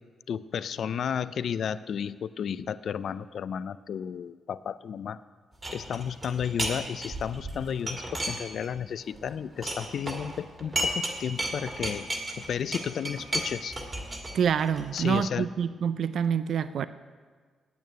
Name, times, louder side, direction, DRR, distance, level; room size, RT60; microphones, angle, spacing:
voice 1, 0.3-5.2 5.7-12.1 12.5-13.7 14.9-15.5, left 8 dB, 55° left, 15 dB, 0.4 m, -32 dB
sound 1, 5.6-6.8 7.0-8.8 9.1-11.1 11.4-15.2, right 1 dB, 20° right, 1.7 m, -33 dB
voice 2, 14.3-16.9, right 7 dB, 55° right, 13 dB, 0.3 m, -26 dB
9.3 x 8.5 x 9.2 m, 1.5 s
cardioid pair, 155°, 0 cm